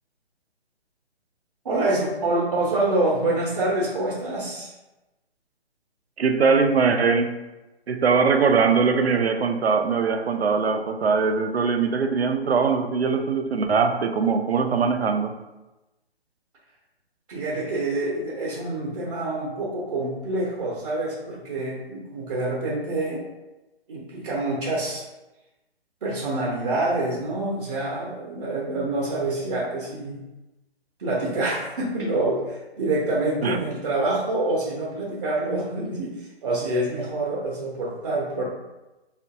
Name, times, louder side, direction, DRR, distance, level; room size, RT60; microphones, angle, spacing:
voice 1, 1.6-4.7 17.3-23.2 23.9-25.0 26.0-30.2 31.0-38.4, right 2 dB, 35° right, 0.7 m, -26 dB
voice 2, 6.2-7.4 7.9-15.4 33.4-33.6, right 5 dB, 75° right, 0.5 m, -21 dB
4.5 x 2.5 x 2.5 m
figure-of-eight pair, 135°, 32 cm